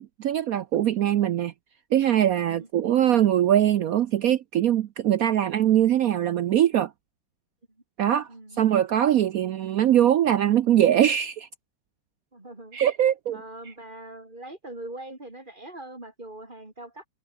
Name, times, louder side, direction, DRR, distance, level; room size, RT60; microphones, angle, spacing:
voice 1, 0.0-1.5 1.9-6.9 8.0-8.3 8.6-11.5 12.7-13.4, right 11 dB, 80° right, 0.7 m, -22 dB
voice 2, 8.3-8.6 12.3-12.8 13.3-17.1, right 1 dB, 20° right, 4.6 m, -42 dB
omnidirectional pair, 2.2 m